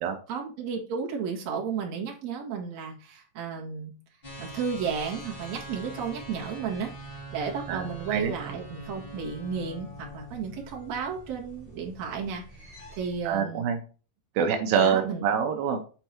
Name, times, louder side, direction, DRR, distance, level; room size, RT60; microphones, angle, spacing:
voice 1, 0.3-3.9 4.4-6.9 7.3-13.6 14.8-15.2, right 6 dB, 55° right, -1 dB, 2.8 m, -33 dB
sound 1, 4.2-13.3, right 1 dB, 25° left, 1.3 m, -43 dB
voice 2, 7.7-8.3 13.3-13.8 14.4-15.8, right 7 dB, 80° right, 4 dB, 2.7 m, -26 dB
8.9 x 4.5 x 4.4 m, 0.36 s
omnidirectional pair, 4.1 m